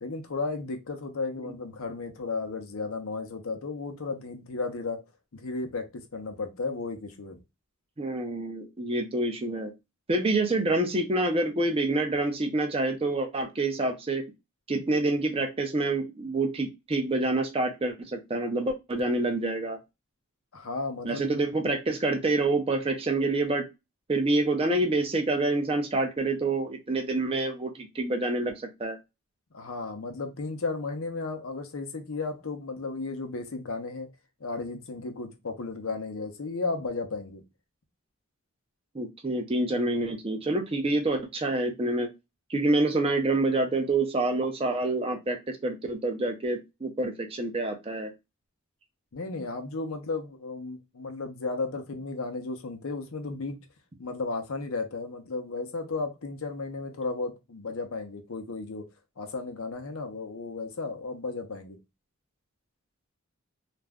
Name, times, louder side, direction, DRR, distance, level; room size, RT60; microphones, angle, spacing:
voice 1, 0.0-5.0 5.3-7.4 20.5-21.4 29.5-34.1 34.4-37.4 49.1-53.6 54.0-58.9 59.2-61.8, left 3 dB, 70° left, 0.6 m, -34 dB
voice 2, 8.0-9.7 10.1-14.2 14.7-19.8 21.0-23.6 24.1-28.5 28.8-29.0 38.9-42.1 42.5-48.1, right 2 dB, 25° right, 0.5 m, -27 dB
2.4 x 2.1 x 3.4 m
head